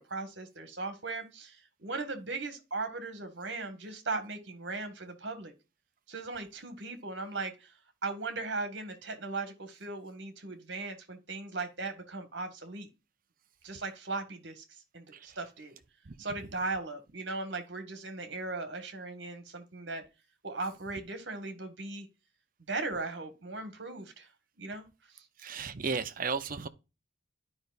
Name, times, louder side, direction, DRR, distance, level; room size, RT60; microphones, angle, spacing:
voice 1, 0.0-5.5 6.1-7.7 8.0-12.9 13.6-14.6 14.9-15.7 16.2-20.0 20.4-22.1 22.7-24.3 24.6-24.8 25.1-25.2, right 3 dB, 60° right, 1.6 m, -38 dB
voice 2, 25.4-26.7, right 5 dB, 45° right, 0.6 m, -34 dB
12.0 x 5.3 x 2.5 m
head